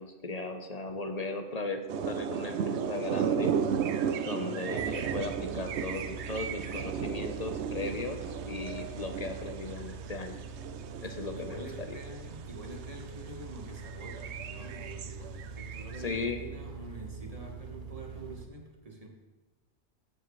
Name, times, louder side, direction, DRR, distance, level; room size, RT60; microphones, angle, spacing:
voice 1, 0.0-3.5 4.2-10.3 11.0-11.9 16.0-16.4, left 3 dB, 40° left, 6 dB, 0.9 m, -37 dB
sound 1, 1.9-12.3 12.8-13.0 13.4-16.0, right 7 dB, 80° right, 0.9 m, -34 dB
voice 2, 4.4-5.1 11.0-11.1 11.3-19.1, right 2 dB, 35° right, 1 dB, 1.5 m, -46 dB
sound 2, 4.8-18.5, right 5 dB, 50° right, 0.8 m, -44 dB
14.5 x 7.7 x 3.2 m, 1.2 s
omnidirectional pair, 1.1 m